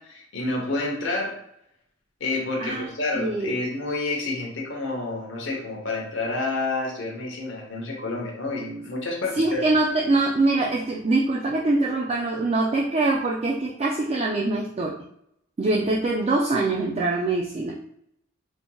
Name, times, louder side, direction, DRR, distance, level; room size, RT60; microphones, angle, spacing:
voice 1, 0.0-1.4 2.2-9.6, left 2 dB, 70° left, -1 dB, 0.9 m, -29 dB
voice 2, 3.2-3.5 9.4-15.0 15.6-17.8, right 2 dB, 30° right, -2 dB, 0.3 m, -23 dB
4.4 x 2.8 x 2.3 m, 0.73 s
head